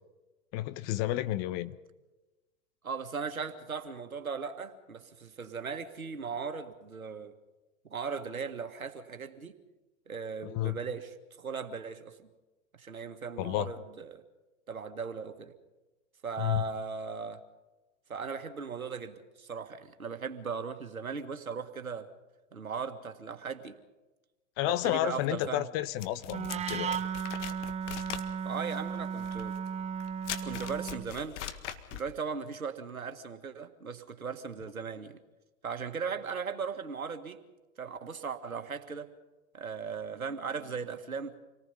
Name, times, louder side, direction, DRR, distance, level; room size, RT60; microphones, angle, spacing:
voice 1, 0.5-1.8 10.4-10.8 13.4-13.7 16.4-16.7 24.6-27.0, left 15 dB, 40° left, 14 dB, 1.1 m, -31 dB
voice 2, 2.8-7.3 7.8-9.5 10.1-12.3 12.7-14.2 14.7-15.5 16.2-17.4 18.1-22.1 22.5-23.8 24.7-25.7 28.5-29.5 30.4-31.4 31.9-35.2 35.6-37.4 37.8-39.1 39.5-41.4, right 5 dB, 90° right, 8 dB, 1.8 m, -38 dB
sound 1, 26.0-32.1, left 10 dB, 60° left, 1.8 m, -41 dB
Wind instrument woodwind instrument, 26.3-31.1, right 7 dB, 15° right, 0.8 m, -35 dB
27.0 x 19.0 x 5.4 m, 1.1 s
hypercardioid pair, 105°, 41 cm